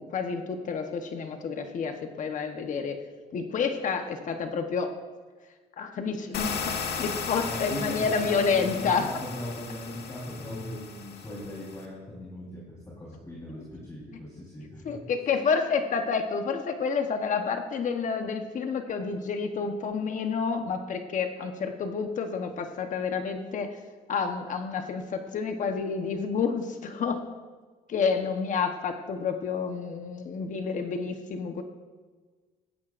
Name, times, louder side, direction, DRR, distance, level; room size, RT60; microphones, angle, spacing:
voice 1, 0.0-3.0 3.3-4.9 5.8-9.1 14.8-23.8 24.1-27.2 27.9-31.6, left 5 dB, 50° left, 6 dB, 1.0 m, -29 dB
sound 1, 6.3-11.9, left 6 dB, 65° left, 1.5 m, -36 dB
voice 2, 7.4-12.6 13.0-14.9, left 1 dB, 20° left, -5 dB, 3.8 m, -39 dB
16.0 x 14.0 x 2.5 m, 1.4 s
cardioid pair, 110°, 17 cm